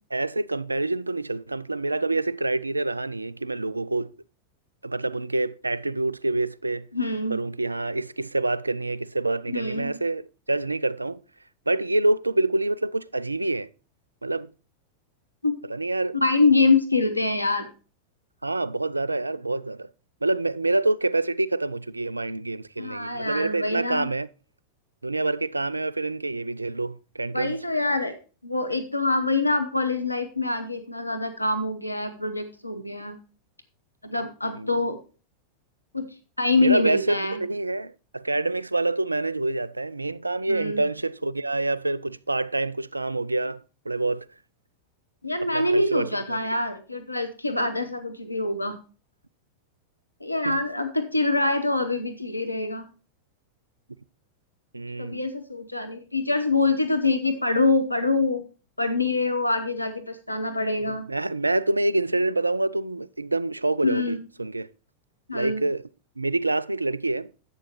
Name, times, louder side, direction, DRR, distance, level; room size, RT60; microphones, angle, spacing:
voice 1, 0.1-4.1 4.8-6.9 7.3-11.2 11.7-13.7 14.2-14.5 15.7-16.2 18.4-19.9 20.2-24.3 25.0-27.5 34.6-34.8 36.6-44.3 45.4-46.1 46.4-46.5 50.4-50.6 54.7-55.3 60.9-64.7 65.3-65.8 66.2-67.3, right 2 dB, 80° right, 0.3 m, -27 dB
voice 2, 6.9-7.4 9.5-9.9 15.4-15.6 16.2-17.7 22.8-24.1 27.3-28.1 28.4-33.2 34.0-35.0 35.9-36.1 36.4-37.4 40.5-40.8 45.2-48.8 50.2-52.9 55.0-58.4 58.8-61.1 63.8-64.2 65.3-65.6, left 3 dB, 85° left, 0.8 m, -25 dB
11.0 x 8.6 x 3.0 m
figure-of-eight pair, 90°, 0 cm